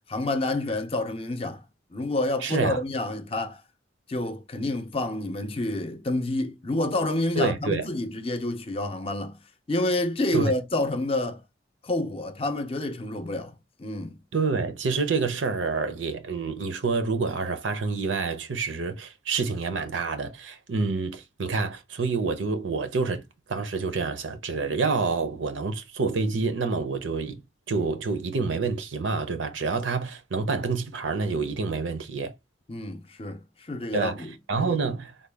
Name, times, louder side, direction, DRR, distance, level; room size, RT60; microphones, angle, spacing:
voice 1, 0.1-1.6 1.9-3.6 4.1-9.4 9.7-11.4 11.8-13.5 13.8-14.2 32.7-33.4 33.7-34.3 34.6-34.8, left 2 dB, 30° left, 0.5 m, -28 dB
voice 2, 2.4-2.8 7.4-7.9 10.3-10.5 14.3-23.2 23.5-27.4 27.7-32.3 33.9-35.1, right 4 dB, 85° right, 0.7 m, -27 dB
3.7 x 2.3 x 3.4 m
head